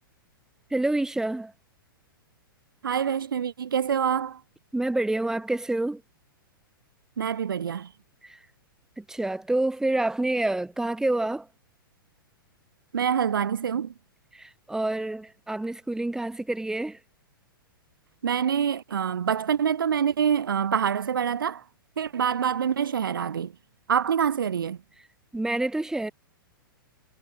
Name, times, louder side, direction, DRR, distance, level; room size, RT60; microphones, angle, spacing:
voice 1, 0.7-1.5 4.7-6.0 8.2-8.4 9.0-11.5 14.3-17.0 25.3-26.1, right 2 dB, 5° right, 3.5 m, -27 dB
voice 2, 2.8-4.4 7.2-7.9 12.9-13.9 18.2-21.6 22.0-23.5 23.9-24.8, right 8 dB, 65° right, 0.8 m, -26 dB
figure-of-eight pair, 105°, 12 cm